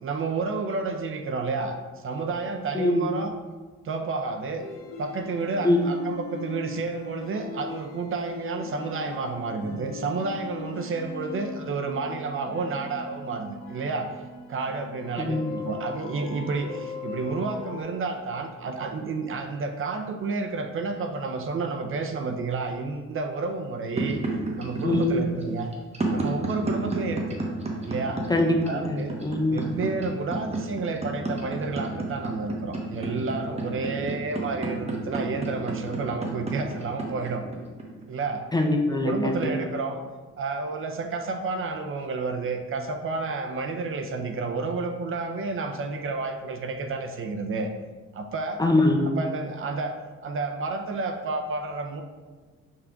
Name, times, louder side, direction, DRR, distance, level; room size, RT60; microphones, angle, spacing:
voice 1, 0.0-3.3 3.8-4.7 5.0-14.2 14.5-24.2 24.6-25.7 26.1-27.4 27.8-28.3 28.7-29.2 29.5-37.4 38.1-38.4 38.9-40.0 40.4-47.7 48.1-48.6 49.0-49.9 50.2-52.0, right 4 dB, 45° right, 5 dB, 0.5 m, -30 dB
voice 2, 2.7-3.1 5.6-5.8 15.2-15.4 24.8-25.2 28.3-28.9 29.2-29.7 38.5-39.5 48.6-49.1, left 2 dB, 15° left, 2 dB, 0.5 m, -23 dB
sound 1, 4.6-17.8, left 5 dB, 90° left, 1.0 m, -39 dB
sound 2, 24.0-38.5, right 2 dB, 20° right, 0.9 m, -30 dB
6.4 x 3.6 x 2.3 m, 1.4 s
cardioid pair, 90°, 30 cm